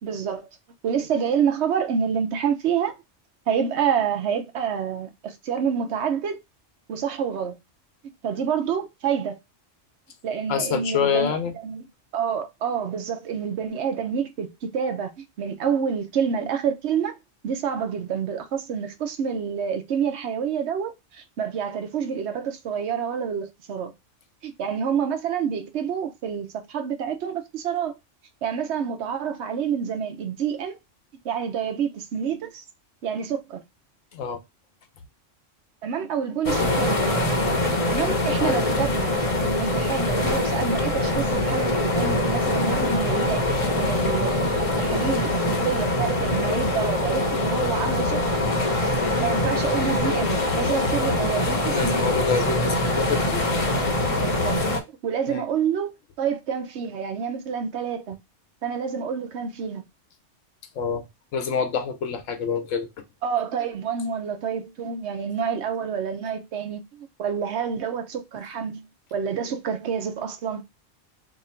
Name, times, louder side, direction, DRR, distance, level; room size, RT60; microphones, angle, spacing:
voice 1, 0.0-0.5 0.8-2.9 3.5-6.4 6.9-7.6 8.0-9.4 10.2-11.4 11.6-11.9 12.1-17.2 17.4-23.9 24.4-27.9 28.4-30.8 31.2-32.6 33.0-33.6 35.8-37.3 37.9-39.1 39.4-48.4 49.2-52.1 54.2-54.6 55.0-55.9 56.2-58.2 58.6-59.8 63.2-70.6, right 7 dB, 65° right, 1.0 m, -28 dB
voice 2, 10.5-11.5 34.1-34.4 38.4-38.7 51.7-53.4 55.3-55.5 60.7-61.1 61.3-62.9, left 6 dB, 90° left, 1.1 m, -26 dB
sound 1, 36.4-54.8, left 2 dB, 35° left, 0.7 m, -23 dB
2.9 x 2.5 x 4.2 m
omnidirectional pair, 1.3 m